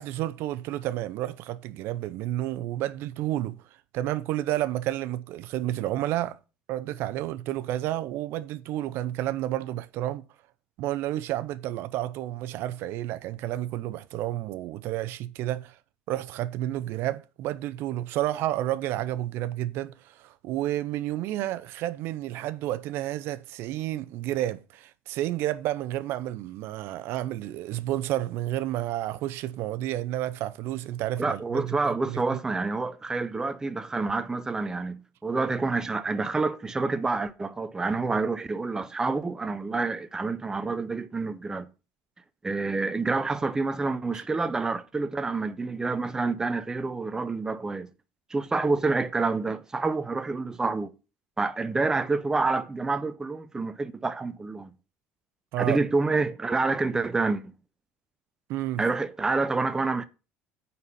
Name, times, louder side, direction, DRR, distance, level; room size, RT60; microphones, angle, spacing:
voice 1, 0.0-3.6 3.9-6.4 6.7-10.2 10.8-15.8 16.1-31.8 32.1-32.4 44.1-44.2 55.5-55.8 58.5-58.8, right 14 dB, 65° right, 0.6 m, -31 dB
voice 2, 31.2-41.7 42.4-47.9 48.3-50.9 51.4-54.7 55.6-57.5 58.8-60.1, right 3 dB, 15° right, 0.7 m, -28 dB
9.5 x 4.2 x 5.5 m
cardioid pair, 125°, 4 cm